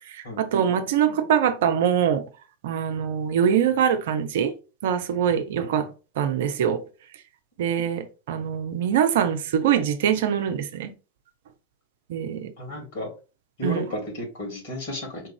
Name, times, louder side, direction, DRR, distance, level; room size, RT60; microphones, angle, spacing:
voice 1, 0.1-2.2 2.6-4.5 4.8-5.9 6.2-6.8 7.6-10.9 12.1-12.5 13.6-13.8, right 8 dB, 55° right, 0.6 m, -23 dB
voice 2, 12.6-13.1 13.6-15.2, left 1 dB, 55° left, 2.6 m, -32 dB
4.5 x 2.5 x 4.6 m
figure-of-eight pair, 90°, 0 cm